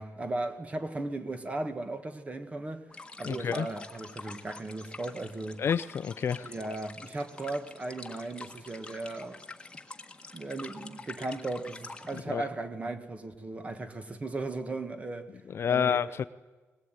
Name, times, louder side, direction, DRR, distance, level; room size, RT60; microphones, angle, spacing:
voice 1, 0.0-2.9 3.2-5.6 6.4-9.4 10.3-15.3 15.7-16.1, right 2 dB, 25° right, 1.8 m, -36 dB
sound 1, 2.9-12.2, left 3 dB, 20° left, 1.6 m, -46 dB
voice 2, 3.2-3.7 5.6-6.5 12.3-12.4 15.5-16.2, left 7 dB, 50° left, 0.7 m, -29 dB
21.0 x 21.0 x 9.3 m
wide cardioid pair, 160°, 5 cm